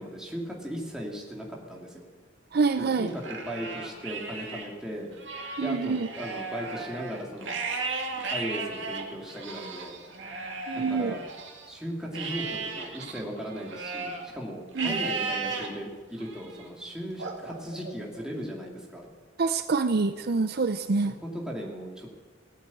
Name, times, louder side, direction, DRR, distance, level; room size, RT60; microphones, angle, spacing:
voice 1, 0.0-2.0 2.8-5.1 5.6-7.5 8.3-10.0 10.7-11.2 11.7-19.1 21.0-22.2, equal, 5° right, -2 dB, 2.7 m, -37 dB
voice 2, 2.5-3.1 5.6-6.1 10.7-11.1 14.8-15.0 19.4-21.1, right 4 dB, 55° right, 10 dB, 0.5 m, -26 dB
Livestock farm animals working animals, 3.1-4.7 5.1-11.7 12.1-14.3 14.7-15.7 16.2-16.6 17.2-18.3, right 4 dB, 75° right, 2.3 m, -35 dB
18.5 x 8.6 x 8.6 m, 1.4 s
head